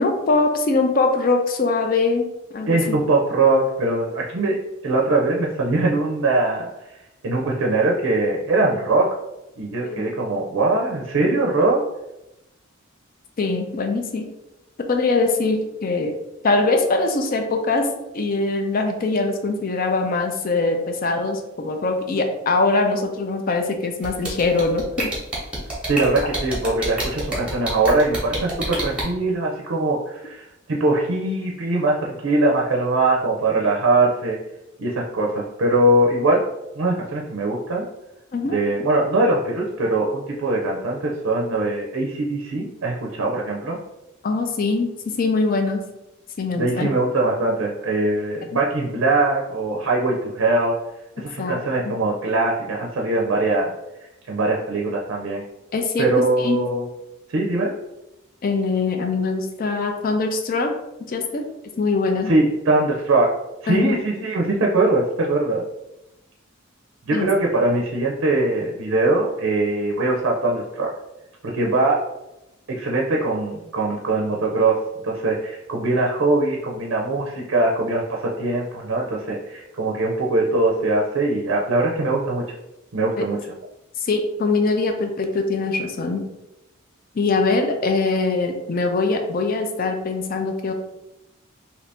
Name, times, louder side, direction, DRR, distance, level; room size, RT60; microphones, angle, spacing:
voice 1, 0.0-2.3 2.5-3.0 9.8-10.0 13.4-14.2 14.9-16.1 16.4-17.9 18.1-24.8 38.3-38.6 44.2-45.8 46.4-46.9 48.5-48.6 51.4-51.9 55.7-56.1 56.4-56.6 58.4-60.7 61.1-61.4 61.8-62.3 63.7-64.0 67.1-67.3 83.2-83.3 84.0-86.2 87.1-90.7, left 3 dB, 45° left, 5 dB, 0.4 m, -22 dB
voice 2, 2.7-4.6 4.8-6.7 7.2-9.1 9.6-11.8 25.9-34.4 34.8-36.4 36.8-37.8 38.5-43.8 46.5-50.8 51.2-53.7 54.3-55.4 56.0-56.9 57.3-57.7 62.2-63.3 63.6-65.6 67.1-70.9 71.4-72.0 72.7-74.7 75.0-82.4 82.9-83.4, right 2 dB, 70° right, -1 dB, 0.5 m, -21 dB
sound 1, 24.0-29.0, right 1 dB, 5° right, 0.9 m, -27 dB
2.8 x 2.6 x 3.3 m, 0.92 s
head